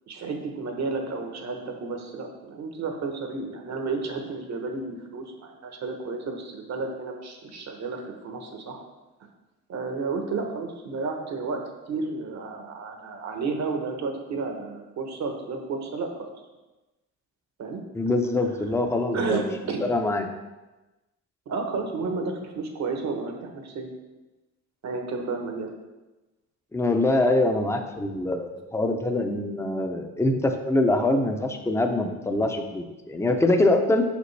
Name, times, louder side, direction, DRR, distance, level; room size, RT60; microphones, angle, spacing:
voice 1, 0.1-8.8 9.7-16.3 17.6-17.8 18.4-18.5 19.1-19.9 21.5-23.9 24.8-25.7, right 4 dB, 60° right, 3 dB, 1.1 m, -32 dB
voice 2, 17.9-19.5 19.8-20.3 26.7-34.0, left 2 dB, 10° left, 5 dB, 0.6 m, -24 dB
5.8 x 5.1 x 3.3 m, 1.1 s
cardioid pair, 90°, 30 cm